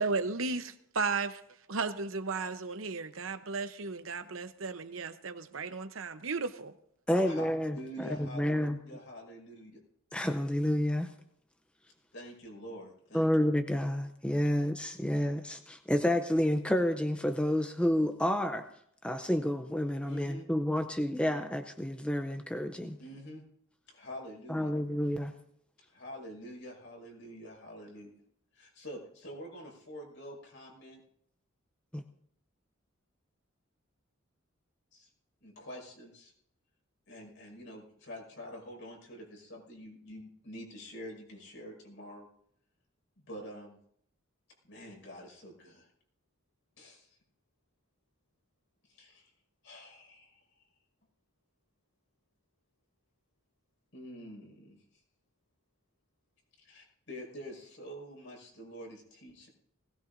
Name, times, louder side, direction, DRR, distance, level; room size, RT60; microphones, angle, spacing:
voice 1, 0.0-1.4 1.7-6.7, right 4 dB, 75° right, 9 dB, 0.9 m, -34 dB
voice 2, 7.1-8.8 10.1-11.1 13.1-18.6 19.0-23.0 24.5-25.3 31.9-32.0, left 1 dB, 5° left, 6 dB, 0.6 m, -30 dB
voice 3, 7.7-9.8 12.1-13.3 20.0-20.4 23.0-23.4 23.9-24.7 25.9-28.2 28.5-31.0 34.9-35.1 35.4-36.3 37.1-42.3 43.2-43.8 44.6-45.9 46.8-47.1 48.9-49.3 49.6-50.4 53.9-54.8 56.6-59.5, equal, 70° left, 0 dB, 5.7 m, -46 dB
20.0 x 17.5 x 2.7 m, 0.68 s
head